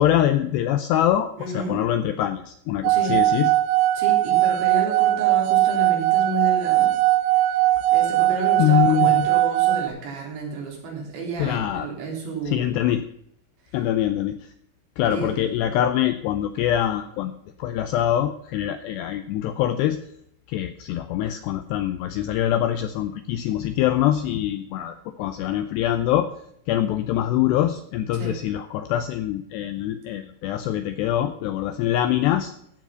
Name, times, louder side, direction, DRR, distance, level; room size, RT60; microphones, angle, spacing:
voice 1, 0.0-3.5 8.6-9.3 11.4-11.9 12.5-13.0 13.7-14.5 15.0-17.3 17.6-20.0 20.5-26.3 26.7-32.5, left 11 dB, 80° left, 9 dB, 2.5 m, -24 dB
voice 2, 1.4-1.8 2.9-3.2 3.9-7.0 7.5-7.6 7.9-12.6 15.1-15.3 28.1-28.3, right 2 dB, 65° right, -1 dB, 5.9 m, -31 dB
sound 1, 2.8-9.9, right 15 dB, 85° right, 2.3 m, -20 dB
15.0 x 7.5 x 5.7 m, 0.73 s
omnidirectional pair, 5.6 m